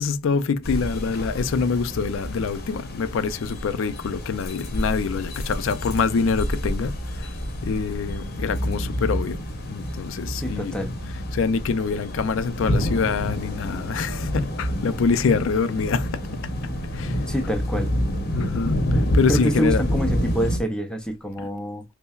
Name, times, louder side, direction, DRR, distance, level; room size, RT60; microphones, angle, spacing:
voice 1, 0.0-7.3 7.6-10.8 11.3-16.5 16.9-17.2 18.3-19.8, left 5 dB, 70° left, 0.4 m, -25 dB
sound 1, 0.6-20.6, equal, 45° left, 0.7 m, -28 dB
voice 2, 10.3-10.9 17.3-17.9 19.3-21.8, equal, 5° left, 0.4 m, -26 dB
5.5 x 2.0 x 2.3 m
head